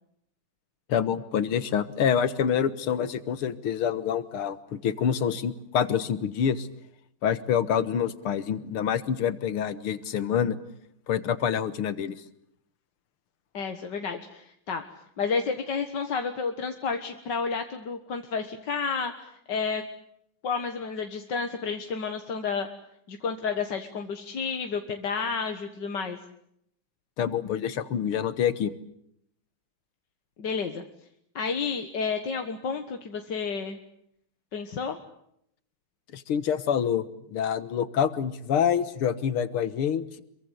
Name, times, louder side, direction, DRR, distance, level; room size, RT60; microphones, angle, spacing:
voice 1, 0.9-6.7 7.2-10.6 11.1-12.2 27.2-28.7 36.1-40.2, left 8 dB, 85° left, 14 dB, 2.3 m, -27 dB
voice 2, 13.5-14.8 15.2-19.8 20.4-22.7 23.1-26.2 30.4-30.8 31.4-33.8 34.5-35.0, left 5 dB, 55° left, 6 dB, 2.1 m, -31 dB
26.5 x 23.0 x 8.2 m, 0.73 s
omnidirectional pair, 2.3 m